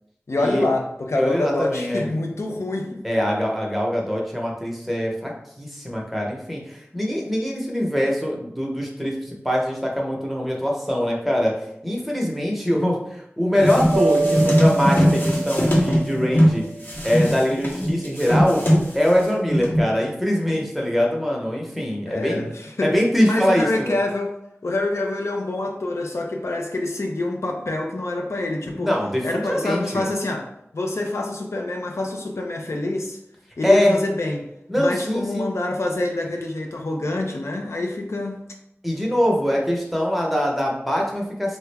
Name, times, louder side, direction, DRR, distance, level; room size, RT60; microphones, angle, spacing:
voice 1, 0.3-3.0 22.1-22.9 23.2-24.3 24.6-28.9 29.2-33.2 33.6-34.5 34.7-38.4, left 2 dB, 90° left, 1 dB, 0.4 m, -26 dB
voice 2, 1.2-2.0 3.0-5.3 5.6-11.5 11.8-16.6 17.0-18.6 18.9-22.4 22.8-24.0 28.8-30.0 33.6-33.9 34.7-35.5 38.8-41.6, equal, ahead, -1 dB, 0.8 m, -23 dB
sound 1, 13.6-16.5 16.9-19.2 19.5-19.8, equal, 50° left, 0.8 m, -20 dB
sound 2, 13.9-17.0, right 3 dB, 80° right, 0.4 m, -26 dB
3.4 x 2.0 x 3.3 m, 0.78 s
wide cardioid pair, 50°, 5 cm